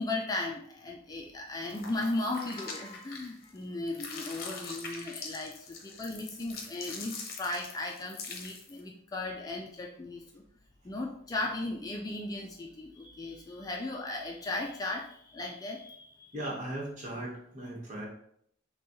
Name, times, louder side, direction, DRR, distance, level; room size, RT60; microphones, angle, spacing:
voice 1, 0.0-10.4 10.8-16.3, left 2 dB, 20° left, 0 dB, 0.3 m, -36 dB
sound 1, 1.6-3.6 3.9-8.8, left 4 dB, 50° left, 0.7 m, -43 dB
voice 2, 16.3-18.1, right 1 dB, 40° right, -3 dB, 1.3 m, -37 dB
6.1 x 2.3 x 3.0 m, 0.69 s
head